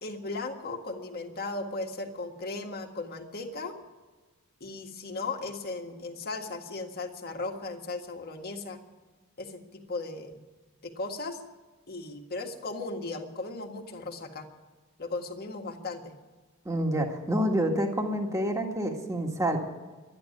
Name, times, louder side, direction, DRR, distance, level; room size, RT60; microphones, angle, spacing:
voice 1, 0.0-3.8 4.6-8.8 9.4-10.3 10.8-11.4 11.9-14.5 15.0-16.1, left 3 dB, 45° left, 4 dB, 1.8 m, -36 dB
voice 2, 16.7-19.6, right 1 dB, 15° right, 2 dB, 1.8 m, -28 dB
12.5 x 10.5 x 9.6 m, 1.3 s
head